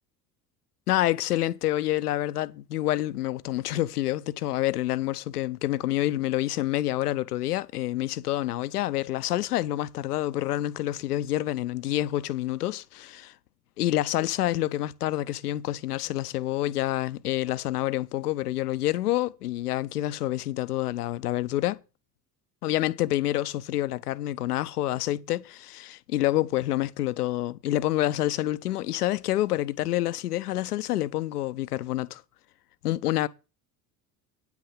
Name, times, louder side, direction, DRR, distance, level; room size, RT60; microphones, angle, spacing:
voice 1, 0.9-13.3 13.8-21.8 22.6-32.2 32.8-33.3, left 14 dB, 75° left, 0.7 m, -28 dB
9.4 x 5.9 x 7.3 m
figure-of-eight pair, 60°, 47 cm